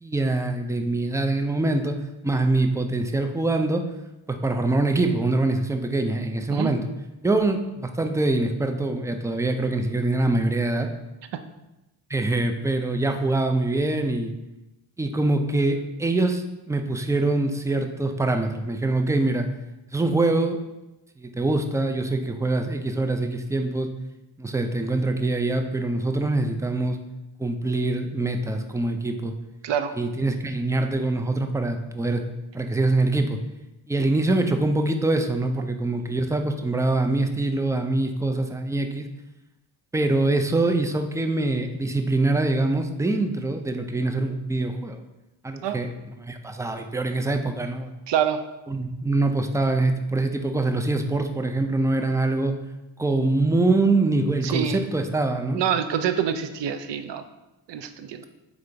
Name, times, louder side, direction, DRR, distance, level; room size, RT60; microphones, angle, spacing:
voice 1, 0.0-2.0 2.2-3.9 4.3-6.8 7.2-10.9 12.1-14.3 15.0-19.5 19.9-20.6 21.2-23.9 24.4-27.0 27.4-29.3 30.0-32.2 32.5-33.4 33.9-39.1 39.9-45.0 45.4-45.9 46.2-47.9 48.7-52.6 53.0-55.6, right 2 dB, 5° right, 6 dB, 0.3 m, -24 dB
voice 2, 29.6-30.0 45.6-45.8 48.1-48.4 54.4-54.8 55.5-57.2 57.7-58.2, right 8 dB, 60° right, 9 dB, 0.5 m, -26 dB
3.7 x 3.6 x 3.3 m, 0.99 s
supercardioid pair, 40°, 49 cm